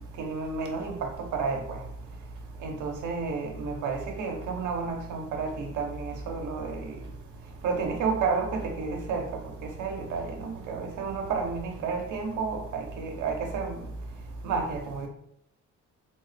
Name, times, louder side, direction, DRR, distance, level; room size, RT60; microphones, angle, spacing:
voice 1, 0.2-1.8 2.6-6.9 7.6-9.2 9.8-13.8 14.4-15.1, right 4 dB, 80° right, 2 dB, 0.9 m, -31 dB
3.5 x 2.1 x 4.0 m, 0.72 s
cardioid pair, 90°, 30 cm